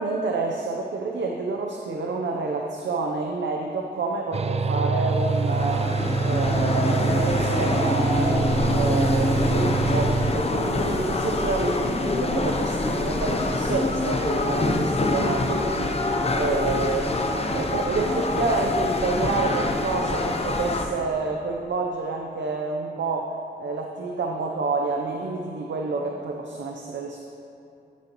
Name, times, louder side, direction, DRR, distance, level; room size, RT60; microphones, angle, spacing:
voice 1, 0.0-17.2 17.5-27.2, right 3 dB, 90° right, 1 dB, 0.7 m, -28 dB
sound 1, 4.3-10.3, right 4 dB, 35° right, 0.4 m, -25 dB
sound 2, 5.1-20.9, left 2 dB, 35° left, 0.7 m, -25 dB
14.0 x 9.3 x 3.0 m, 2.6 s
wide cardioid pair, 140°, 18 cm